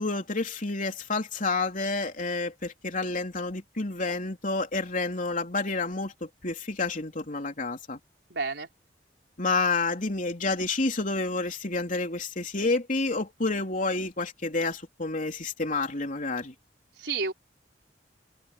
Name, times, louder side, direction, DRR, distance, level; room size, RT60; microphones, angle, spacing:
voice 1, 0.0-8.0 9.4-16.5, left 3 dB, 45° left, 3.6 m, -29 dB
voice 2, 8.3-8.7 17.0-17.3, right 4 dB, 65° right, 5.2 m, -30 dB
head